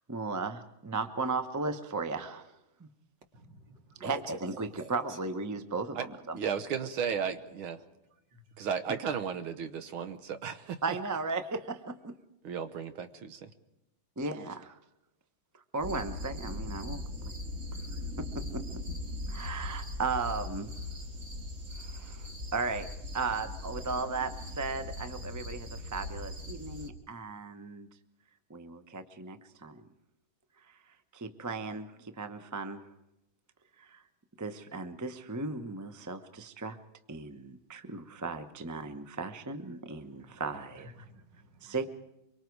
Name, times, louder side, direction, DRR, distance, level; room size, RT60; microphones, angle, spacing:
voice 1, 0.1-2.5 2.8-2.9 4.0-6.4 10.8-12.1 14.2-14.8 15.7-17.3 18.2-18.6 19.3-20.7 21.8-22.9 23.1-27.9 28.5-29.9 31.1-32.8 33.8-34.0 34.4-36.8 37.1-40.9 41.6-42.0, right 3 dB, 20° right, 9 dB, 0.5 m, -36 dB
voice 2, 3.3-4.2 4.5-5.2 8.3-8.4 40.0-40.4 41.0-41.8, right 3 dB, 60° right, 4 dB, 2.7 m, -48 dB
voice 3, 6.4-7.8 8.6-11.0 12.4-13.5, right 7 dB, 90° right, 10 dB, 1.9 m, -34 dB
sound 1, 15.8-26.9, left 1 dB, 40° right, 2.4 m, -40 dB
25.0 x 23.5 x 4.7 m, 0.88 s
omnidirectional pair, 2.2 m